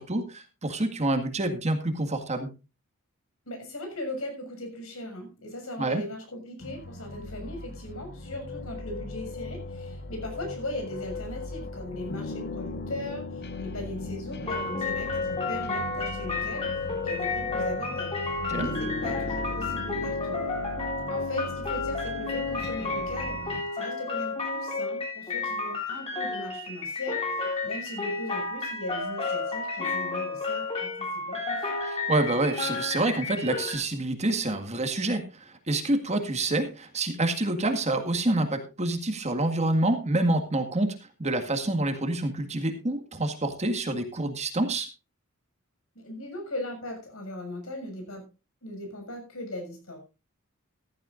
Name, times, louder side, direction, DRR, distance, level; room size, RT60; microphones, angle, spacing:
voice 1, 0.0-2.5 5.8-6.0 18.5-18.7 31.8-44.9, right 2 dB, 30° right, 6 dB, 1.9 m, -27 dB
voice 2, 3.5-18.1 18.5-20.6 21.1-31.7 45.9-48.2 48.6-50.0, left 1 dB, 70° left, 5 dB, 6.6 m, -38 dB
sound 1, 6.6-23.6, left 3 dB, 50° left, 1.4 m, -37 dB
sound 2, 14.5-33.7, left 3 dB, 25° left, 7.8 m, -32 dB
15.0 x 14.5 x 2.6 m, 0.29 s
head